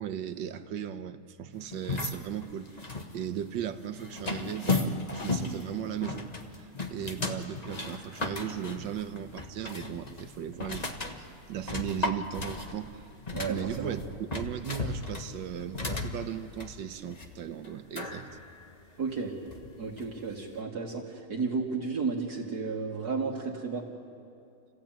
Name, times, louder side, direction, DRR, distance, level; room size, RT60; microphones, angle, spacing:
voice 1, 0.0-2.9 3.1-6.3 6.5-10.9 11.2-13.0 13.5-18.3, right 9 dB, 75° right, 10 dB, 1.5 m, -37 dB
sound 1, 1.7-20.2, left 3 dB, 25° left, 1.3 m, -36 dB
voice 2, 13.3-13.9 19.0-19.4 19.8-23.9, right 4 dB, 60° right, -2 dB, 2.3 m, -33 dB
29.5 x 15.5 x 9.0 m, 2.5 s
omnidirectional pair, 2.0 m